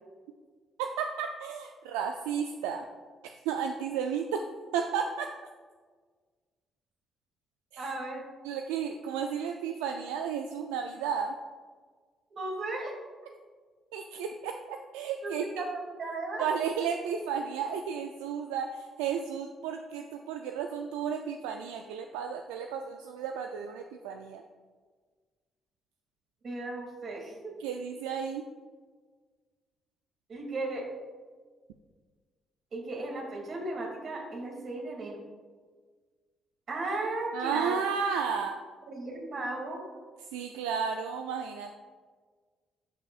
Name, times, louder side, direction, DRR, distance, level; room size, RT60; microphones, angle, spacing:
voice 1, 0.8-2.8 3.2-4.5 4.7-5.3 7.7-7.8 8.4-11.3 13.9-15.6 16.4-24.4 27.6-28.4 37.3-38.6 40.3-41.7, right 7 dB, 85° right, 4 dB, 0.3 m, -33 dB
voice 2, 7.8-8.2 12.3-12.9 15.2-16.4 26.4-27.6 30.3-30.8 32.7-35.2 36.7-37.8 38.9-39.9, right 2 dB, 55° right, 0 dB, 2.3 m, -35 dB
12.0 x 5.7 x 2.4 m, 1.5 s
hypercardioid pair, 50°, 0 cm